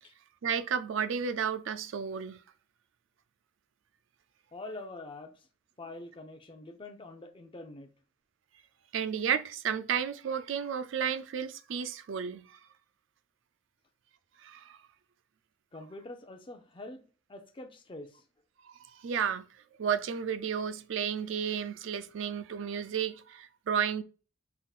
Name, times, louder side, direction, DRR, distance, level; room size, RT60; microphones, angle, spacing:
voice 1, 0.4-2.4 8.9-12.6 14.4-14.8 18.7-19.4 19.8-24.0, right 7 dB, 80° right, 0.4 m, -32 dB
voice 2, 4.5-5.3 5.8-7.9 15.7-17.0 17.3-18.2, left 2 dB, 25° left, 0.6 m, -45 dB
5.7 x 3.7 x 2.4 m
head